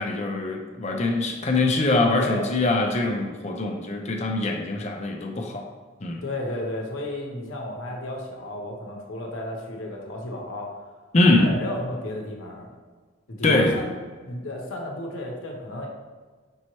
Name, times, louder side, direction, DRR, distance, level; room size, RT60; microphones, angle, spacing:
voice 1, 0.0-5.7 6.0-6.2 11.1-11.5 13.4-13.7, left 2 dB, 35° left, 2 dB, 0.5 m, -23 dB
voice 2, 2.1-2.5 6.2-10.8 11.3-12.7 13.3-13.9 14.2-15.9, left 1 dB, 70° left, 0 dB, 0.8 m, -33 dB
5.4 x 2.9 x 3.0 m, 1.4 s
head